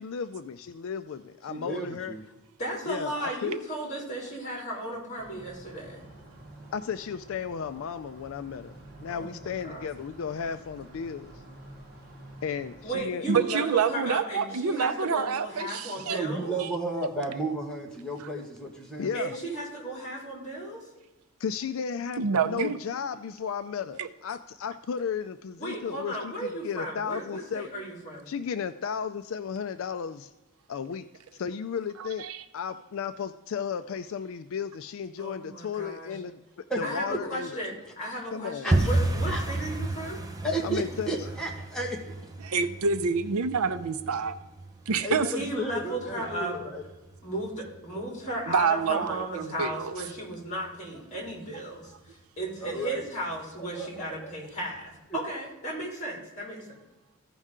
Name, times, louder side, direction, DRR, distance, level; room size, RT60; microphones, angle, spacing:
voice 1, 0.0-2.2 2.8-3.5 6.7-11.4 12.4-13.3 19.0-19.4 21.4-27.7 28.3-30.3 30.7-31.1 31.3-36.4 36.8-37.5 38.3-38.7 40.6-41.2, left 6 dB, 65° left, 0.3 m, -34 dB
voice 2, 1.5-2.2 16.1-19.1 36.1-36.2 36.7-36.8 37.1-37.2 38.6-38.9 39.3-39.6 40.4-42.0 45.0-46.8 52.6-53.0 53.6-54.3, right 1 dB, 5° left, 1.4 m, -33 dB
voice 3, 2.6-6.0 9.0-9.9 12.8-16.5 19.1-20.9 25.6-28.3 35.2-36.1 36.8-40.2 45.3-46.6 47.2-51.9 52.4-56.7, right 1 dB, 35° left, 3.5 m, -35 dB
sound 1, 5.2-13.1, right 1 dB, 40° right, 3.0 m, -49 dB
voice 4, 13.3-16.2 16.6-16.7 22.2-22.8 24.0-24.1 32.2-32.4 42.4-44.4 44.9-45.3 48.5-49.9, right 5 dB, 75° right, 0.6 m, -27 dB
sound 2, 38.7-49.4 49.7-50.4 50.6-50.9 51.2-51.6 51.9-52.0 52.5-53.0 53.4-53.5 54.0-54.1, right 2 dB, 15° right, 0.6 m, -33 dB
15.0 x 5.4 x 3.7 m
head